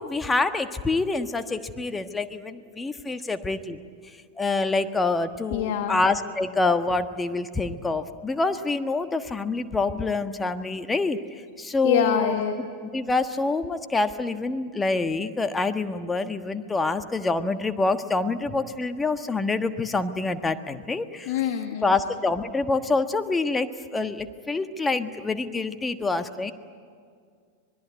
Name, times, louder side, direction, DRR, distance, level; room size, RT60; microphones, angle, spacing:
voice 1, 0.0-3.8 4.4-11.2 11.6-12.7 12.9-21.3 21.8-26.5, left 3 dB, 15° left, 8 dB, 1.4 m, -26 dB
voice 2, 5.5-6.0 11.8-12.5 21.2-21.9, left 9 dB, 60° left, 5 dB, 1.7 m, -25 dB
25.5 x 21.0 x 9.4 m, 2.2 s
figure-of-eight pair, 95°, 0 cm